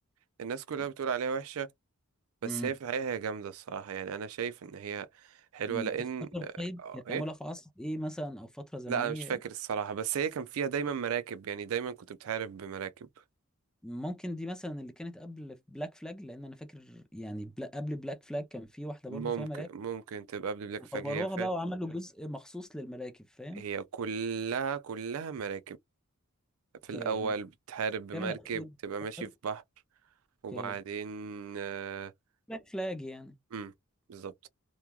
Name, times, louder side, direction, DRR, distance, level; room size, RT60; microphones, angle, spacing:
voice 1, 0.4-1.7 2.4-5.1 5.5-6.3 6.8-7.2 8.9-12.9 19.1-21.5 23.6-25.8 26.8-29.6 30.4-32.1 33.5-33.7 34.1-34.5, right 6 dB, 70° right, 0.4 m, -35 dB
voice 2, 2.4-2.8 5.7-5.9 6.3-9.4 13.8-19.7 20.9-23.7 26.9-27.3 28.1-28.7 29.2-29.3 30.5-30.8 32.5-33.4, equal, 5° left, 0.4 m, -38 dB
3.0 x 2.2 x 2.2 m
head